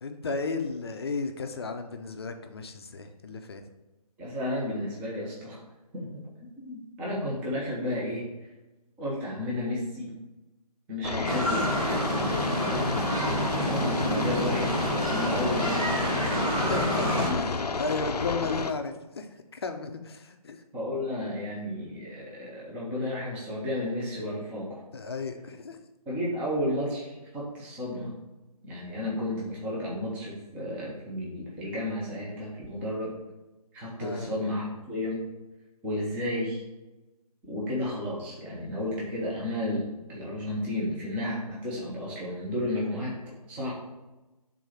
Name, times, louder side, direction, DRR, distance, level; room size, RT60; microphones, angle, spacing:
voice 1, 0.0-3.7 12.7-13.0 16.5-19.3 19.5-20.6 24.9-25.8 34.0-34.3, left 4 dB, 40° left, 6 dB, 0.6 m, -34 dB
voice 2, 4.2-5.6 5.9-6.3 6.6-8.5 9.0-10.1 10.9-12.1 13.3-16.1 16.6-17.5 20.7-24.8 26.1-28.1 28.6-33.2 33.7-35.2 35.8-36.6 37.4-43.2 43.5-43.7, left 1 dB, 5° right, -5 dB, 0.7 m, -32 dB
sound 1, 11.0-18.7, left 4 dB, 90° left, 0.5 m, -31 dB
sound 2, 11.2-17.3, equal, 60° right, 1.9 m, -28 dB
4.7 x 3.8 x 5.7 m, 1.1 s
figure-of-eight pair, 155°, 20 cm